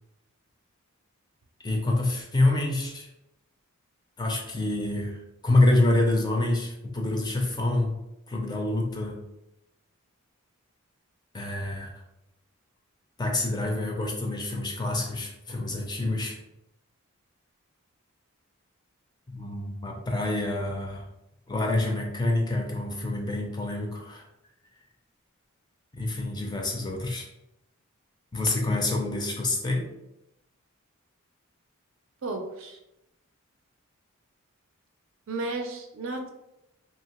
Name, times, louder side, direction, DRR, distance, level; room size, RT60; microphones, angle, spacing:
voice 1, 1.6-3.1 4.2-5.2 5.4-7.9 8.3-9.2 11.3-11.9 13.2-16.4 19.3-21.0 21.5-24.2 25.9-27.3 28.3-29.9, left 2 dB, 20° left, 1 dB, 0.4 m, -27 dB
voice 2, 32.2-32.8 35.3-36.3, right 2 dB, 60° right, 4 dB, 0.5 m, -33 dB
2.8 x 2.7 x 2.9 m, 0.88 s
head